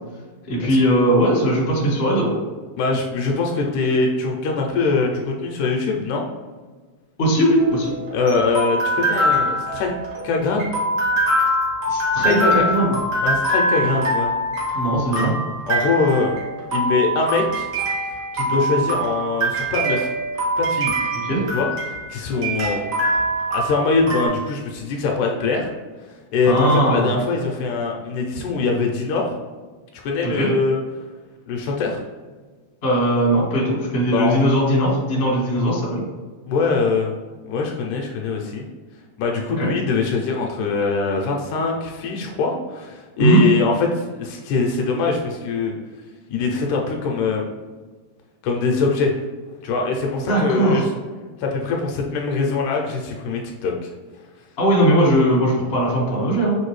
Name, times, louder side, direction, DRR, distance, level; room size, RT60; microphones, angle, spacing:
voice 1, 0.5-2.3 7.2-7.9 11.9-12.9 14.7-15.3 21.3-21.4 26.4-27.1 30.2-30.5 32.8-36.0 39.6-39.7 43.2-43.4 50.3-50.9 54.6-56.5, right 1 dB, 35° left, -5 dB, 0.9 m, -19 dB
voice 2, 2.8-6.2 8.1-9.9 10.2-10.8 12.2-12.6 13.2-14.3 15.7-16.3 16.7-17.7 18.3-20.1 20.6-20.9 21.5-22.8 23.5-25.7 26.3-29.3 29.9-30.8 31.5-32.0 34.1-34.5 36.5-37.1 37.5-38.6 39.2-45.7 46.3-47.4 48.4-49.1 49.6-50.9 51.4-53.9, left 4 dB, 80° left, 0 dB, 2.0 m, -22 dB
sound 1, 7.6-24.3, right 1 dB, 75° right, 0.9 m, -23 dB
6.4 x 2.6 x 3.1 m, 1.4 s
omnidirectional pair, 3.7 m